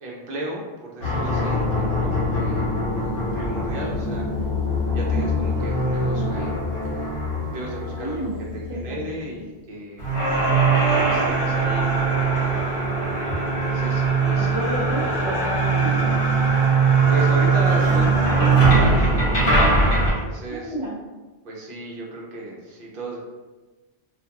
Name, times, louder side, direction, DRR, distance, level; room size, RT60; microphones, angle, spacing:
voice 1, 0.0-2.6 3.3-4.4 4.9-7.2 7.5-10.3 10.9-12.8 13.5-14.6 17.1-18.1 18.7-19.4 20.0-20.7 21.4-23.2, right 1 dB, 60° right, -3 dB, 0.8 m, -34 dB
sound 1, 1.0-9.0 10.0-20.1, right 3 dB, 60° left, 1.0 m, -21 dB
voice 2, 1.8-2.1 5.1-5.4 8.0-8.4 8.7-9.1 14.4-16.2 20.5-21.0, right 1 dB, 30° right, -9 dB, 0.9 m, -30 dB
2.4 x 2.3 x 2.8 m, 1.2 s
omnidirectional pair, 1.1 m